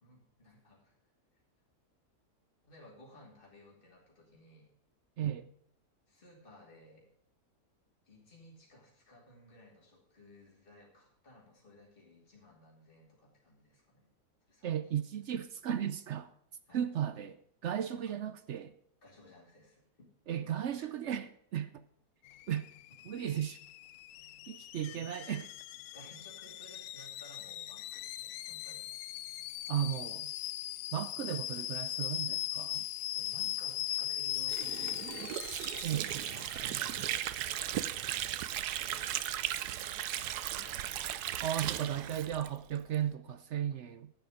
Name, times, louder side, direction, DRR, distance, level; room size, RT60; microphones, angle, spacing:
voice 1, 0.0-1.0 2.7-4.7 6.1-7.1 8.0-14.1 14.5-15.0 16.7-16.8 18.0-18.2 19.0-20.9 23.2-23.3 24.7-25.1 25.9-28.9 33.1-35.3 36.2-41.2, left 1 dB, 35° left, 3.1 m, -57 dB
voice 2, 5.2-5.5 14.6-16.3 16.7-17.4 17.6-18.7 20.3-21.8 22.5-22.7 23.0-23.6 24.5-25.5 29.7-30.3 30.9-32.8 35.8-36.1 41.4-44.1, right 10 dB, 65° right, 0.7 m, -35 dB
Alarm / Boiling, 22.3-37.1, left 13 dB, 80° left, 1.1 m, -40 dB
Water / Sink (filling or washing), 34.5-43.0, right 12 dB, 90° right, 1.2 m, -36 dB
11.5 x 9.3 x 5.0 m
omnidirectional pair, 1.6 m